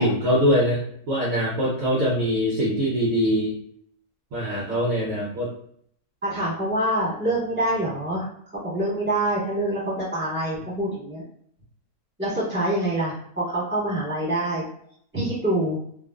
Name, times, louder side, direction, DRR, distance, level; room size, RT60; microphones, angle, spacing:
voice 1, 0.0-3.5 4.3-5.5, equal, 65° right, -6 dB, 1.0 m, -23 dB
voice 2, 6.2-8.3 8.5-11.2 12.2-14.6 15.1-15.8, right 1 dB, 10° right, -9 dB, 1.3 m, -25 dB
2.5 x 2.4 x 2.3 m, 0.65 s
omnidirectional pair, 1.7 m